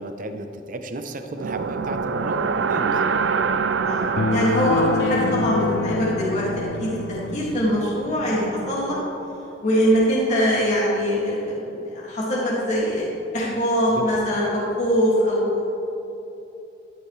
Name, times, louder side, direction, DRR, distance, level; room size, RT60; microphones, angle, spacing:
voice 1, 0.0-3.2 13.9-14.1, right 1 dB, 45° right, 7 dB, 0.8 m, -33 dB
sound 1, 1.4-9.4, right 5 dB, 85° right, 0.4 m, -27 dB
voice 2, 3.8-9.0 9.6-13.0 13.3-15.8, equal, 40° left, -7 dB, 2.4 m, -23 dB
sound 2, 4.2-7.7, left 5 dB, 60° left, 0.3 m, -27 dB
12.5 x 12.5 x 3.3 m, 3.0 s
head